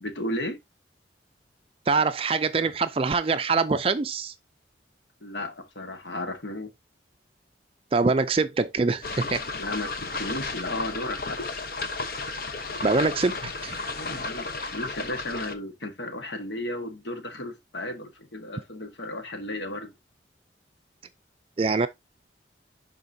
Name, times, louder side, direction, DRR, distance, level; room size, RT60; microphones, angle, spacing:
voice 1, 0.0-0.6 5.2-6.7 9.6-11.5 14.2-19.9, left 1 dB, 75° left, 1.5 m, -34 dB
voice 2, 1.9-4.3 7.9-9.4 12.8-13.4 13.6-13.9 21.6-21.9, right 4 dB, 30° right, 0.4 m, -24 dB
sound 1, 9.0-15.5, left 3 dB, 50° left, 0.9 m, -33 dB
11.5 x 4.4 x 2.7 m
head